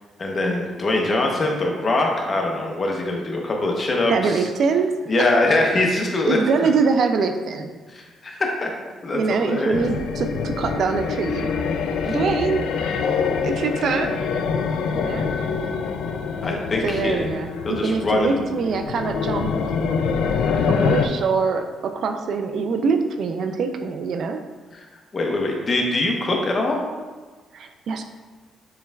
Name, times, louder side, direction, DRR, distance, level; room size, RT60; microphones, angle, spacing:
voice 1, 0.2-4.4 5.1-6.7 7.9-8.7 9.0-9.8 16.4-17.3 17.6-18.4 25.1-26.8, left 2 dB, 35° left, 0 dB, 0.9 m, -23 dB
voice 2, 4.1-4.9 6.3-7.7 9.1-11.5 12.0-12.6 13.4-14.2 14.9-15.3 16.8-19.5 20.7-24.4 27.5-28.0, right 5 dB, 65° right, 6 dB, 0.4 m, -23 dB
sound 1, 9.7-21.1, left 5 dB, 80° left, 0.3 m, -25 dB
6.9 x 3.2 x 2.3 m, 1.3 s
cardioid pair, 90°, 0 cm